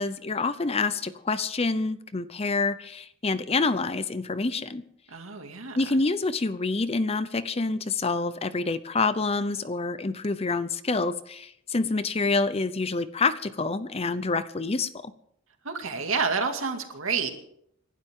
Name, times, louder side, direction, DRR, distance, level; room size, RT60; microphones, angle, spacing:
voice 1, 0.0-4.8 5.7-15.1, left 3 dB, 30° left, 14 dB, 0.6 m, -27 dB
voice 2, 5.1-5.8 15.6-17.3, right 5 dB, 70° right, 4 dB, 2.3 m, -29 dB
29.0 x 12.0 x 3.7 m, 0.73 s
head